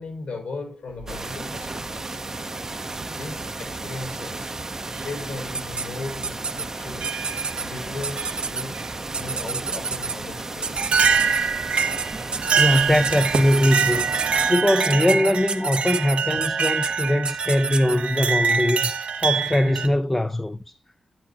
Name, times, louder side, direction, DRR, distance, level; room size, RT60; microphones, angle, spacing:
voice 1, 0.0-2.2 3.1-4.5 4.9-7.2 7.6-11.1, left 3 dB, 85° left, 5.5 m, -37 dB
sound 1, 0.9-1.8 2.9-3.0 4.0-4.3 4.9-5.1 5.7-5.9 7.0-7.7 8.2-8.9 10.1-10.2 10.8-19.9, right 6 dB, 80° right, 1.0 m, -25 dB
sound 2, 1.1-14.5, right 2 dB, 25° right, 0.7 m, -34 dB
sound 3, 5.5-5.9 6.2-6.7 7.0-7.6 8.0-8.6 9.1-10.2 10.6-11.4 11.8-12.1 12.3-18.0, right 5 dB, 55° right, 0.8 m, -29 dB
voice 2, 12.6-20.8, left 1 dB, 15° left, 0.4 m, -22 dB
10.5 x 10.5 x 2.8 m
wide cardioid pair, 135°, 2 cm